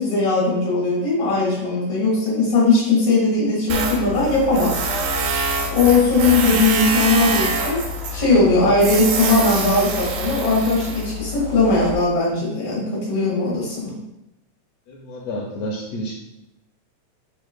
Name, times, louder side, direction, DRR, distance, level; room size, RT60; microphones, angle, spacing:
voice 1, 0.0-4.8 5.7-7.8 8.1-14.0, left 3 dB, 50° left, -7 dB, 2.3 m, -19 dB
Tools, 3.7-11.9, right 2 dB, 80° right, 2.1 m, -25 dB
voice 2, 14.9-16.1, equal, 75° left, -3 dB, 1.5 m, -30 dB
5.1 x 4.5 x 2.2 m, 0.89 s
omnidirectional pair, 3.5 m